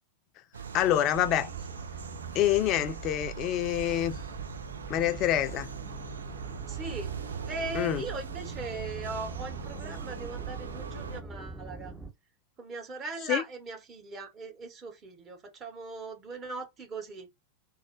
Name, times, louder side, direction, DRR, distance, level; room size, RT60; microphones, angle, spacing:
sound 1, 0.5-11.2, right 7 dB, 70° right, 0.4 m, -40 dB
voice 1, 0.7-1.5 2.3-4.2 4.9-5.7 7.7-8.0 13.3-13.4, left 12 dB, 35° left, 0.4 m, -26 dB
sound 2, 0.9-12.1, right 2 dB, 10° right, 0.6 m, -44 dB
voice 2, 6.7-11.9 12.6-17.3, right 3 dB, 25° right, 1.0 m, -39 dB
3.9 x 2.0 x 3.1 m
figure-of-eight pair, 90°, 0 cm